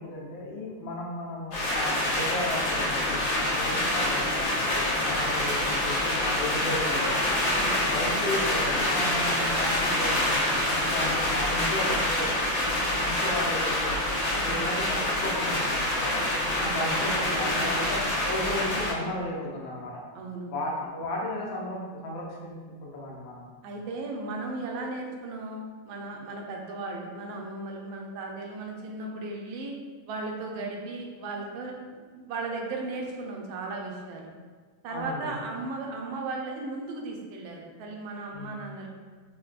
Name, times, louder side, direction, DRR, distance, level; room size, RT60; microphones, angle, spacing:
voice 1, 0.0-7.3 7.9-10.4 10.7-12.3 13.0-16.3 16.6-20.0 20.5-23.5 34.9-35.3 38.3-38.6, left 1 dB, 80° left, -3 dB, 1.4 m, -34 dB
sound 1, 1.5-18.9, left 1 dB, 60° left, 1.0 m, -26 dB
voice 2, 7.5-7.9 14.3-14.6 16.6-17.8 20.1-20.5 23.6-29.7 30.1-34.3 34.8-38.9, right 3 dB, 85° right, 0 dB, 1.4 m, -36 dB
4.3 x 2.2 x 2.4 m, 1.5 s
omnidirectional pair, 2.1 m